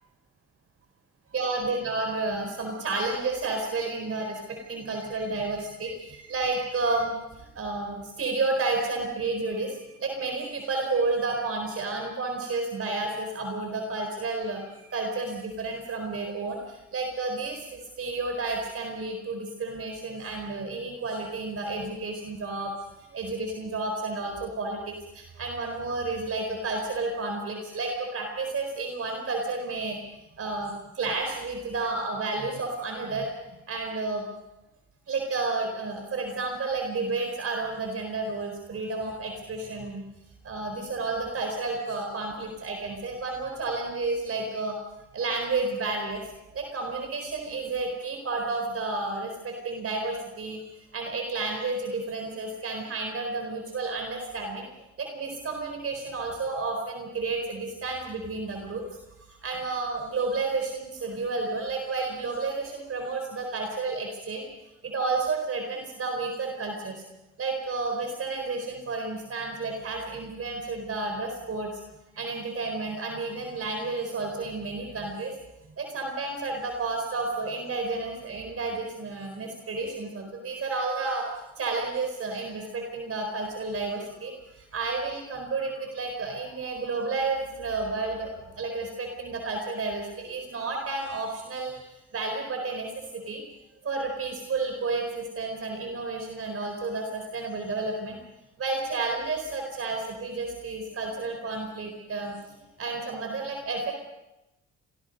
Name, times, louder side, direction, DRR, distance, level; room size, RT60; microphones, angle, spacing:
voice 1, 1.3-22.7 23.1-30.0 30.4-33.3 33.7-34.3 35.1-40.0 40.4-44.8 45.1-50.6 50.9-54.7 55.0-58.8 59.4-64.5 64.8-66.9 67.4-71.7 72.2-75.3 75.8-84.3 84.7-91.7 92.1-92.9 93.1-93.4 93.8-98.2 98.6-102.4 102.8-103.9, right 3 dB, 50° right, 3 dB, 4.4 m, -31 dB
27.5 x 21.0 x 5.4 m, 0.95 s
cardioid pair, 90°, 30 cm